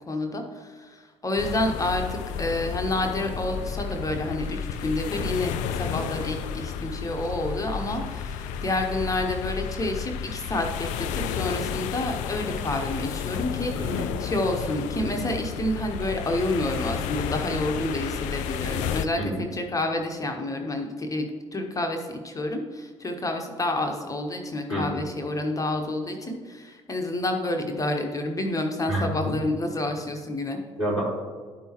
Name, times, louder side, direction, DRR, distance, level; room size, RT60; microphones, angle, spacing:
voice 1, 0.1-0.4 1.2-21.3 21.5-22.0 22.2-30.6, left 1 dB, 20° left, 3 dB, 1.0 m, -29 dB
sound 1, 1.4-19.1, left 8 dB, 55° left, 0.4 m, -32 dB
voice 2, 13.7-14.1 19.2-19.3 24.7-25.0 28.9-29.1 30.8-31.0, equal, 90° right, -9 dB, 2.3 m, -28 dB
12.0 x 5.4 x 3.0 m, 1.5 s
figure-of-eight pair, 50°, 15 cm